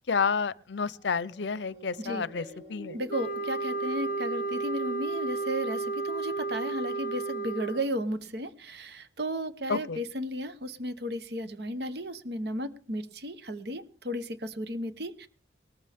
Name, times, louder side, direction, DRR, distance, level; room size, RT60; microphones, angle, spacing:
voice 1, 0.1-2.4 2.7-3.0 9.7-10.0, left 5 dB, 75° left, 0.6 m, -30 dB
sound 1, 0.8-7.4 8.1-8.2, right 1 dB, 30° right, 4.1 m, -52 dB
voice 2, 2.9-15.3, equal, 60° right, 1.0 m, -34 dB
sound 2, 3.1-8.0, right 3 dB, 45° left, 0.9 m, -32 dB
19.5 x 14.0 x 3.6 m
head